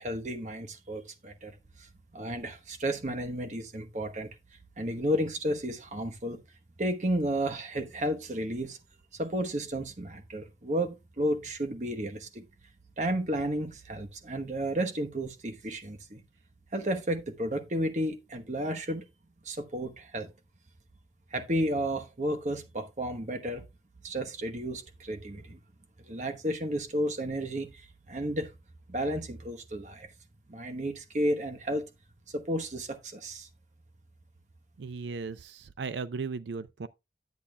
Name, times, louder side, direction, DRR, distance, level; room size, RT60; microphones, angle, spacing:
voice 1, 0.0-1.9 2.1-4.3 4.8-6.4 6.8-8.8 9.1-12.4 13.0-16.2 16.7-19.0 19.4-20.3 21.3-23.6 24.0-25.6 26.0-28.5 28.9-30.1 30.5-31.9 32.3-33.5, equal, 40° right, 1.0 m, -32 dB
voice 2, 34.8-36.9, right 4 dB, 80° right, 0.4 m, -36 dB
10.5 x 8.4 x 2.2 m
head